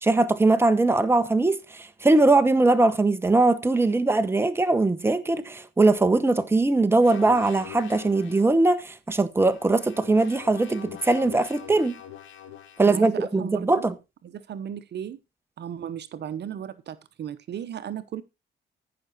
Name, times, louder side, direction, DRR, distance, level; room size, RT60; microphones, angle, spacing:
voice 1, 0.0-12.0 12.8-13.9, right 2 dB, 10° right, 1.0 m, -21 dB
sound 1, 7.0-8.6 9.4-13.0, left 10 dB, 75° left, 1.9 m, -44 dB
voice 2, 12.8-13.8 14.2-15.2 15.6-18.2, right 9 dB, 60° right, 0.9 m, -35 dB
14.0 x 5.9 x 4.1 m
cardioid pair, 90°, 20 cm